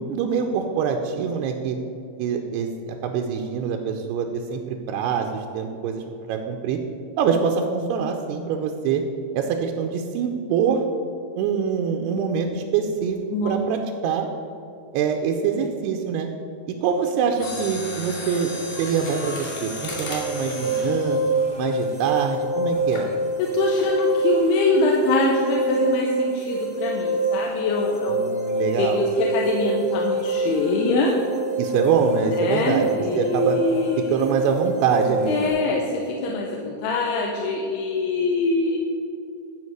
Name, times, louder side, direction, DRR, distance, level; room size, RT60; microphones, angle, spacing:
voice 1, 0.0-1.8 2.2-6.0 6.3-6.8 7.2-9.0 9.3-10.8 11.4-13.2 13.5-14.3 14.9-16.3 16.8-18.5 18.8-21.2 21.6-23.1 28.1-29.0 31.6-33.6 34.1-35.6, right 6 dB, 85° right, 3 dB, 2.6 m, -24 dB
voice 2, 13.3-13.6 14.0-14.2 23.4-31.2 32.3-34.2 35.3-38.8, left 2 dB, 80° left, -1 dB, 2.8 m, -24 dB
Mechanisms, 17.3-22.3 22.9-23.1 23.8-24.1 24.4-24.5, left 1 dB, 50° left, 3.7 m, -35 dB
sound 1, 19.8-35.5, right 2 dB, 65° right, 0.4 m, -26 dB
12.5 x 5.0 x 7.9 m, 2.5 s
omnidirectional pair, 4.9 m